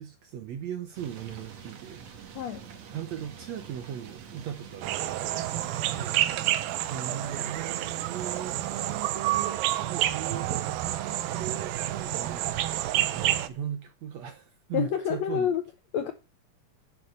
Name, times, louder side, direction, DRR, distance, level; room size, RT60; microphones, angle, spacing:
voice 1, 0.0-2.0 2.9-5.1 5.9-15.5, right 9 dB, 70° right, 1.7 m, -39 dB
sound 1, 0.9-9.1, right 7 dB, 55° right, 2.3 m, -47 dB
sound 2, 4.8-13.5, right 13 dB, 90° right, 2.6 m, -29 dB
voice 2, 14.7-15.6 15.9-16.1, left 9 dB, 75° left, 1.6 m, -28 dB
11.0 x 7.0 x 5.4 m
omnidirectional pair, 4.0 m